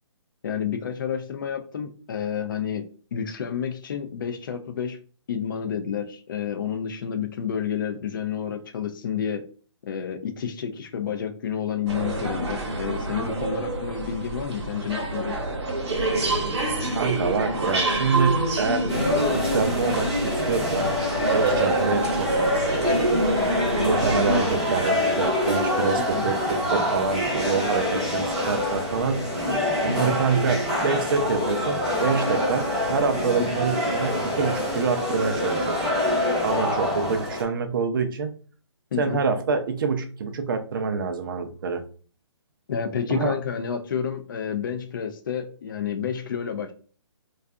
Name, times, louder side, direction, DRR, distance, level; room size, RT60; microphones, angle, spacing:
voice 1, 0.4-5.0 5.3-9.5 9.8-15.4 26.0-26.3 29.9-30.1 33.4-33.5 38.9-39.2 42.7-46.7, left 8 dB, 45° left, 7 dB, 0.4 m, -30 dB
sound 1, 11.9-24.8, right 2 dB, 65° right, 0.9 m, -27 dB
voice 2, 16.9-18.9 19.3-20.9 21.3-22.8 23.8-26.3 26.7-29.3 29.8-35.8 36.4-38.3 39.0-41.8 43.1-43.3, right 5 dB, 45° right, 7 dB, 0.4 m, -26 dB
sound 2, 18.9-37.4, left 1 dB, ahead, 0.7 m, -25 dB
2.5 x 2.3 x 2.3 m, 0.40 s
hypercardioid pair, 150°, 15 cm